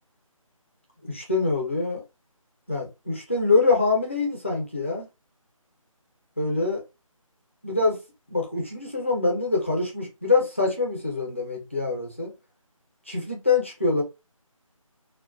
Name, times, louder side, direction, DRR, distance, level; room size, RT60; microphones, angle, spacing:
voice 1, 1.0-2.0 2.7-5.1 6.4-6.8 7.6-8.0 8.3-12.3 13.1-14.0, left 3 dB, 20° left, 0.5 m, -24 dB
2.7 x 2.2 x 2.4 m
figure-of-eight pair, 175°, 18 cm